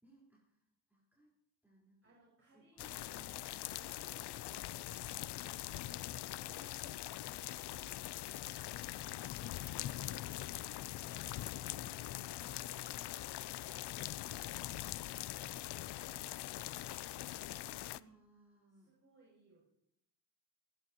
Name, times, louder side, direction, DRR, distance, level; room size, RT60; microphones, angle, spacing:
voice 1, 0.0-1.3 1.6-2.2 2.5-3.8 5.7-6.0 11.7-12.7 17.8-19.0, right 1 dB, 5° right, -5 dB, 4.3 m, -65 dB
voice 2, 2.0-3.4 4.0-5.7 6.3-8.3 8.8-10.5 10.9-12.9 13.3-16.6 17.0-18.1 18.7-19.6, right 2 dB, 30° right, -6 dB, 6.7 m, -67 dB
sound 1, 2.8-18.0, left 14 dB, 65° left, 0.5 m, -43 dB
25.5 x 10.5 x 3.0 m, 0.76 s
cardioid pair, 95°, 43 cm